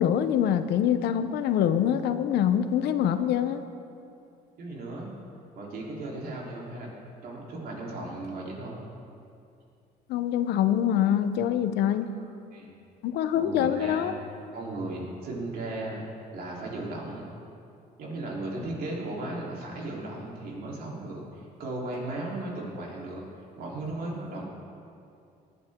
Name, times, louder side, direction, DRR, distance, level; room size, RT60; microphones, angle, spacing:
voice 1, 0.0-3.6 10.1-12.1 13.0-14.1, left 9 dB, 80° left, 10 dB, 0.8 m, -25 dB
voice 2, 4.6-5.1 5.5-6.9 7.2-8.8 12.5-12.7 13.4-14.0 14.5-16.1 16.3-17.3 18.0-23.2 23.6-24.4, right 2 dB, 65° right, -3 dB, 3.6 m, -36 dB
19.0 x 11.0 x 3.7 m, 2.6 s
cardioid pair, 110°, 17 cm